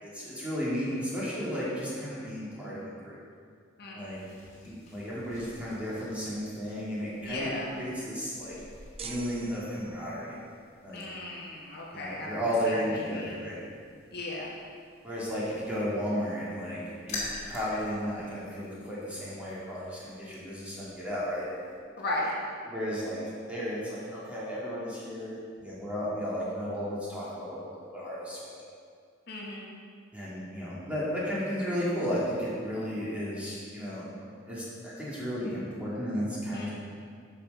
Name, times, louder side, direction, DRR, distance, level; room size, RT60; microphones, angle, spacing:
voice 1, 0.0-3.2 3.9-4.2 4.6-8.6 9.0-10.3 10.8-11.0 11.9-13.6 15.0-16.8 17.1-21.5 22.6-23.2 23.5-27.6 27.9-28.7 30.1-34.1 34.5-36.7, equal, 5° right, -8 dB, 2.6 m, -34 dB
voice 2, 3.8-4.2 7.2-7.7 10.9-12.3 12.7-13.4 14.1-14.5 22.0-22.4 29.3-29.7 36.5-36.7, left 1 dB, 50° left, -3 dB, 1.5 m, -36 dB
sound 1, 4.0-21.8, left 2 dB, 35° left, 2.7 m, -48 dB
sound 2, 9.0-10.3, right 6 dB, 30° right, 0.6 m, -44 dB
10.5 x 6.8 x 5.4 m, 2.1 s
head